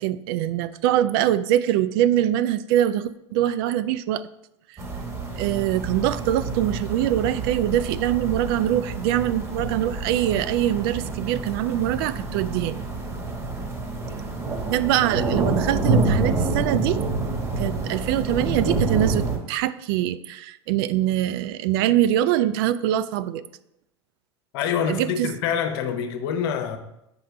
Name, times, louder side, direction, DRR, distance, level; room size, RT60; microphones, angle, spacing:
voice 1, 0.0-4.3 5.4-12.8 14.7-17.1 17.6-23.4 24.9-25.3, right 12 dB, 60° right, 0.4 m, -23 dB
sound 1, 4.8-19.4, right 3 dB, 20° right, 1.6 m, -27 dB
voice 2, 24.5-26.8, left 7 dB, 60° left, 0.9 m, -26 dB
7.8 x 5.3 x 3.3 m
hypercardioid pair, 85°, 14 cm